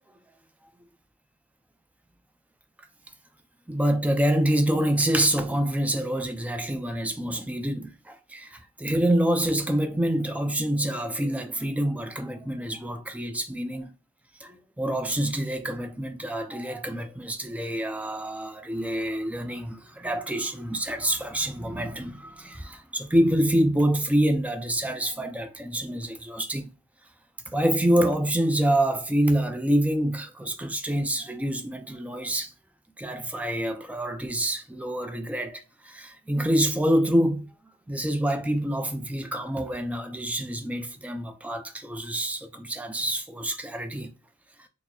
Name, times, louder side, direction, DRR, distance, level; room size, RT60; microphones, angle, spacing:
voice 1, 3.7-13.9 14.4-26.7 27.5-32.5 33.0-37.5 37.9-44.1, right 1 dB, 5° right, 0.3 m, -26 dB
4.3 x 2.0 x 2.9 m
head